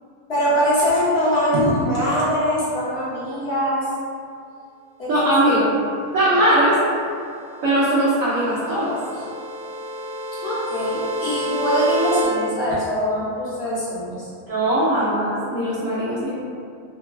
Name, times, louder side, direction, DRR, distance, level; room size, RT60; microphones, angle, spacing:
voice 1, 0.3-3.9 5.0-5.3 6.2-6.4 10.4-14.3, equal, 55° left, -10 dB, 1.0 m, -22 dB
voice 2, 5.1-5.7 6.1-6.8 7.6-8.9 14.5-16.3, right 1 dB, 75° right, -11 dB, 1.0 m, -20 dB
sound 1, 7.3-12.2, equal, 40° right, 0.7 m, -29 dB
3.0 x 2.2 x 2.2 m, 2.4 s
omnidirectional pair, 1.4 m